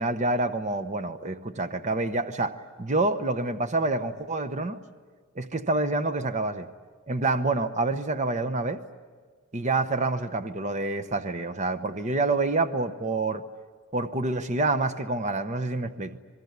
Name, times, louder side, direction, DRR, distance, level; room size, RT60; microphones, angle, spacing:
voice 1, 0.0-4.8 5.4-6.7 7.1-8.8 9.5-13.4 13.9-16.2, right 2 dB, 35° right, 9 dB, 0.9 m, -27 dB
27.0 x 20.0 x 9.5 m, 1.5 s
head